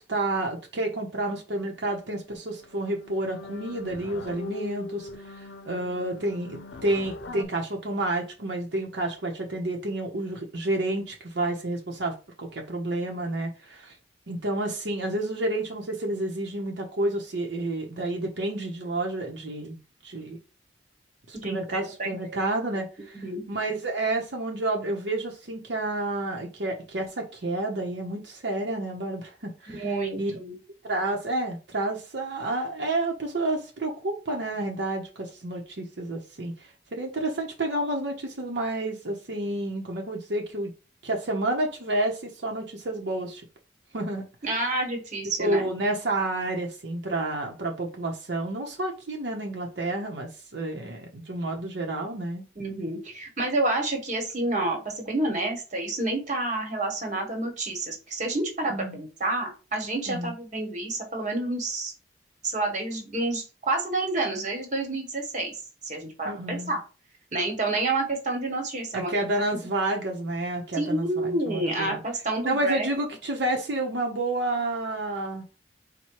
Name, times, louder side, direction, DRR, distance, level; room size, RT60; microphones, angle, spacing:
voice 1, 0.0-14.0 14.3-20.4 21.3-29.8 30.2-30.3 30.8-40.7 41.0-43.4 43.9-44.2 44.6-44.7 45.4-52.4 58.7-59.0 60.1-60.3 66.2-66.8 68.9-72.0 72.4-75.4, right 2 dB, 80° right, 1 dB, 0.8 m, -30 dB
sound 1, 2.0-2.2 2.5-7.5, left 2 dB, 90° left, 0.5 m, -41 dB
voice 2, 21.4-22.4 23.1-23.4 29.7-30.5 44.4-45.7 52.5-61.9 62.4-65.6 65.8-66.8 67.3-69.1 70.7-72.9, right 2 dB, 45° right, 3 dB, 1.3 m, -29 dB
4.3 x 2.2 x 4.6 m, 0.32 s
head